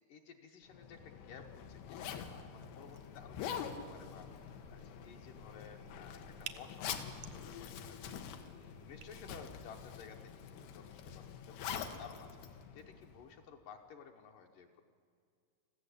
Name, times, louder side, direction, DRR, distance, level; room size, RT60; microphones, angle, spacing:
voice 1, 0.0-8.2 8.6-14.8, left 6 dB, 70° left, 3 dB, 2.3 m, -55 dB
Zipper (clothing), 0.7-13.3, left 8 dB, 90° left, 3.2 m, -46 dB
sound 1, 2.7-10.0, right 9 dB, 85° right, 1.5 m, -56 dB
21.0 x 15.0 x 8.4 m, 2.2 s
omnidirectional pair, 4.5 m